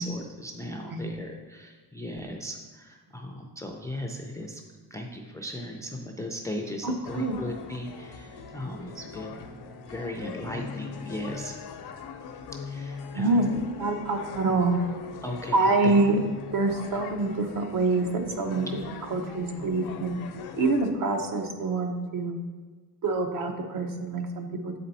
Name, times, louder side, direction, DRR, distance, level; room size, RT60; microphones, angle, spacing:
voice 1, 0.0-4.6 4.9-9.4 9.9-11.6 12.7-13.4 15.2-15.9, left 1 dB, 10° left, 1 dB, 0.4 m, -37 dB
voice 2, 6.8-7.4 13.1-14.8 15.5-16.2 16.5-18.7 19.1-20.1 20.6-22.4 23.0-24.7, right 3 dB, 60° right, 5 dB, 0.8 m, -26 dB
sound 1, 7.0-20.9, left 5 dB, 80° left, 0.7 m, -41 dB
7.6 x 4.3 x 4.0 m, 1.4 s
cardioid pair, 150°, 38 cm